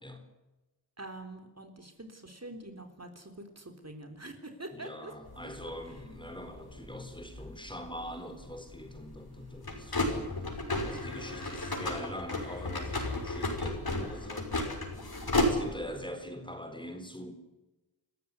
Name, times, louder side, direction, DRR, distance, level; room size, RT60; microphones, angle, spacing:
voice 1, 1.0-5.1, right 2 dB, 40° right, 5 dB, 3.8 m, -45 dB
voice 2, 4.7-10.2 10.4-14.5 15.4-17.3, equal, 10° left, 7 dB, 4.1 m, -43 dB
sound 1, 5.3-16.0, left 1 dB, 60° left, 6.0 m, -34 dB
27.5 x 15.0 x 9.8 m, 1.1 s
wide cardioid pair, 75°, 41 cm